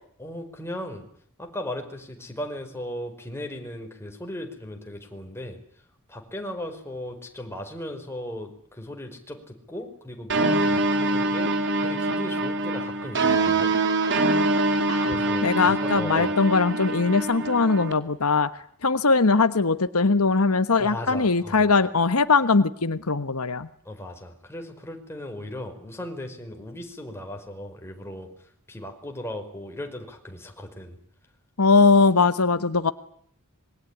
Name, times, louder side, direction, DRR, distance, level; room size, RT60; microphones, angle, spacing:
voice 1, 0.2-1.0 1.4-5.6 6.1-13.7 15.0-16.3 20.8-21.7 23.8-28.3 28.7-31.0, left 1 dB, 10° left, 3 dB, 5.0 m, -37 dB
sound 1, 10.3-17.9, right 2 dB, 55° right, 2.8 m, -24 dB
voice 2, 15.4-18.5 18.8-23.7 31.6-32.9, left 4 dB, 85° left, 12 dB, 1.3 m, -20 dB
26.0 x 22.0 x 9.9 m, 0.64 s
head